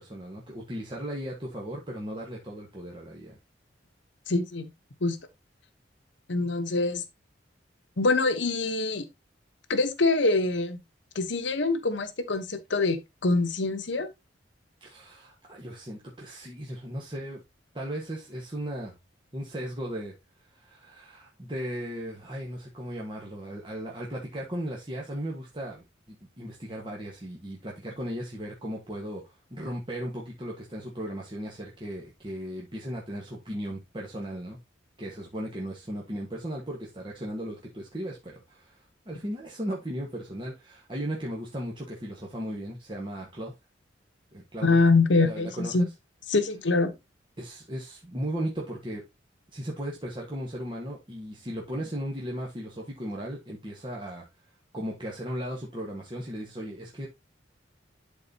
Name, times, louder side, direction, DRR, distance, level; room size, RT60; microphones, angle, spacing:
voice 1, 0.0-3.4 14.8-17.4 17.7-19.0 19.3-20.1 20.5-34.6 35.0-43.5 44.3-44.8 45.2-45.9 47.4-49.0 49.5-54.2 54.7-57.1, equal, 25° right, 1.4 m, -36 dB
voice 2, 4.3-4.7 5.0-5.2 6.3-7.0 8.0-9.1 9.7-10.8 11.1-13.0 13.2-14.1 44.6-45.9 46.3-46.9, left 3 dB, 70° left, 1.0 m, -24 dB
12.0 x 4.0 x 2.8 m
head